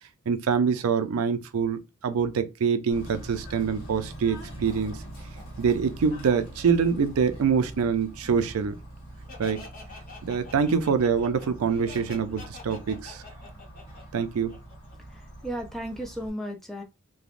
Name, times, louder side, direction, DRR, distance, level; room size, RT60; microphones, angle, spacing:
voice 1, 0.3-5.0 5.6-8.8 9.4-9.6 10.2-13.2 14.1-14.6, right 6 dB, 85° right, 0.4 m, -25 dB
Bird / Train, 2.9-16.3, right 1 dB, 85° left, 1.4 m, -43 dB
Laughter, 9.3-14.9, left 3 dB, 40° left, 0.8 m, -46 dB
voice 2, 15.0-16.8, equal, ahead, 0.5 m, -35 dB
3.2 x 2.1 x 2.4 m
head